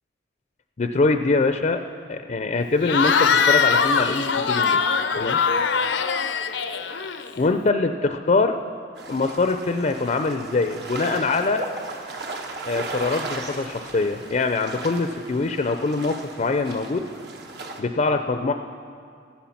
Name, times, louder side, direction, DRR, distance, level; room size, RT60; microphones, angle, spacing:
voice 1, 0.8-1.8 2.1-4.8 5.1-5.4 7.4-8.6 9.1-11.6 12.7-17.0 17.8-18.5, left 3 dB, 40° left, 7 dB, 0.5 m, -23 dB
Cheering / Crowd, 2.8-7.5, left 6 dB, 90° left, 0.6 m, -22 dB
sound 1, 9.0-17.8, right 2 dB, 65° right, 1.2 m, -36 dB
15.0 x 10.0 x 5.8 m, 2.3 s
head